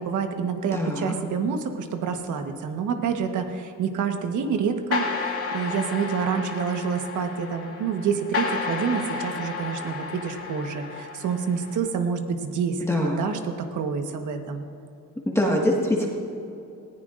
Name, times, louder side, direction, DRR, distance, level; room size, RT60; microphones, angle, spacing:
voice 1, 0.0-14.6, right 6 dB, 75° right, 6 dB, 1.3 m, -28 dB
voice 2, 0.7-1.1 12.8-13.2 15.3-16.1, left 1 dB, 10° left, -2 dB, 1.7 m, -23 dB
sound 1, 4.9-11.8, left 4 dB, 50° left, 3.6 m, -32 dB
20.0 x 15.0 x 2.5 m, 2.6 s
cardioid pair, 90°, 30 cm